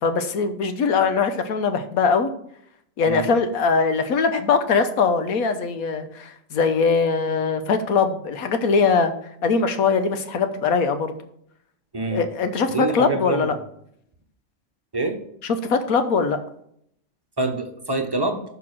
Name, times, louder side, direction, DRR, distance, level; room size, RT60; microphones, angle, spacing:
voice 1, 0.0-2.3 3.0-9.1 9.4-11.1 12.1-13.5 15.7-16.4, left 5 dB, 85° left, 8 dB, 1.3 m, -21 dB
voice 2, 11.9-12.2 12.7-13.6 14.9-15.2 17.4-18.4, right 3 dB, 20° right, 5 dB, 0.8 m, -25 dB
6.8 x 5.8 x 6.0 m, 0.71 s
omnidirectional pair, 1.4 m